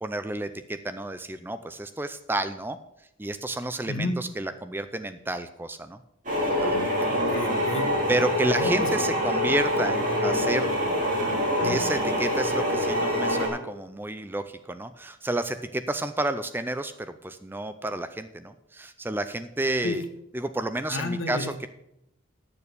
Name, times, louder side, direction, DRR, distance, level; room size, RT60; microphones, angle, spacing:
voice 1, 0.0-2.8 3.2-6.0 6.4-6.8 8.1-10.7 11.6-20.0 20.3-21.7, right 2 dB, 10° right, 10 dB, 0.4 m, -30 dB
voice 2, 3.9-4.2 7.1-7.9 8.5-8.9 19.8-20.0 20.9-21.5, left 2 dB, 70° left, 6 dB, 1.3 m, -31 dB
sound 1, 6.2-13.5, equal, 40° right, 3.5 m, -25 dB
10.5 x 6.9 x 6.7 m, 0.79 s
head